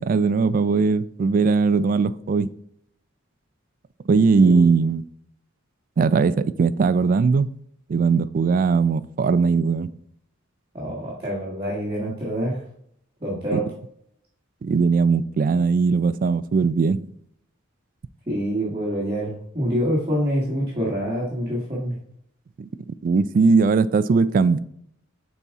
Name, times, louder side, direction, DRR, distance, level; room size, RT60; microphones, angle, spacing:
voice 1, 0.0-2.5 4.1-5.0 6.0-7.5 7.9-9.9 13.5-13.6 14.6-17.0 22.6-24.6, right 4 dB, 45° right, 16 dB, 0.3 m, -19 dB
voice 2, 10.7-12.6 13.2-13.6 18.3-22.0, equal, 25° right, -5 dB, 1.5 m, -26 dB
7.0 x 4.2 x 3.6 m, 0.68 s
head